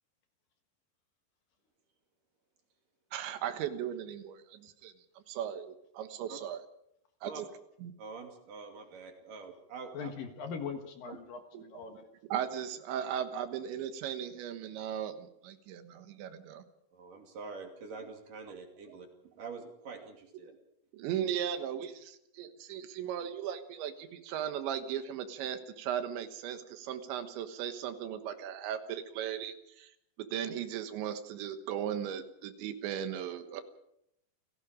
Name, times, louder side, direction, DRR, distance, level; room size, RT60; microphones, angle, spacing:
voice 1, 3.1-4.9 5.3-6.6 7.2-7.5 7.8-7.9 11.1-11.2 11.5-11.6 11.9-12.0 12.3-16.6 18.5-18.6 18.9-19.0 20.5-20.6 20.9-29.9 30.2-33.6, right 9 dB, 85° right, 9 dB, 3.7 m, -37 dB
voice 2, 8.0-10.1 16.9-20.5, right 4 dB, 50° right, 3 dB, 4.0 m, -46 dB
voice 3, 9.9-12.1, left 6 dB, 60° left, 5 dB, 2.9 m, -41 dB
29.5 x 17.0 x 5.1 m, 0.78 s
omnidirectional pair, 5.1 m